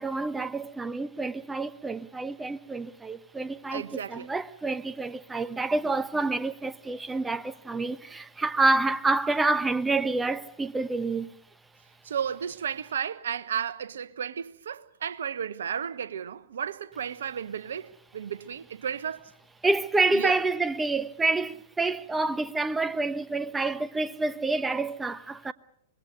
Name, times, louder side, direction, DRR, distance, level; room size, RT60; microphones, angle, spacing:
voice 1, 0.0-11.3 19.6-25.5, right 3 dB, 10° right, 1.0 m, -28 dB
voice 2, 3.7-4.3 12.0-19.3 20.1-20.3, right 8 dB, 70° right, 1.1 m, -33 dB
26.0 x 21.0 x 6.7 m
hypercardioid pair, 105°, 0 cm